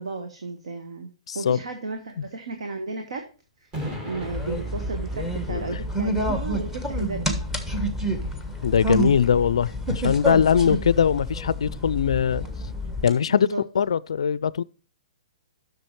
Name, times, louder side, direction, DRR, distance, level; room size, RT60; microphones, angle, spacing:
voice 1, 0.0-1.1 1.3-3.2 3.6-3.7 4.0-7.4 13.3-13.6, right 3 dB, 70° right, 1.2 m, -34 dB
voice 2, 1.3-1.6 2.2-2.3 5.5-5.8 8.6-12.5 13.0-13.5 13.8-14.6, left 7 dB, 70° left, 0.3 m, -21 dB
sound 1, 3.7-10.5, equal, 25° right, 2.5 m, -40 dB
sound 2, 4.2-13.1, right 1 dB, 10° right, 1.2 m, -28 dB
11.5 x 6.4 x 3.2 m
figure-of-eight pair, 120°, 3 cm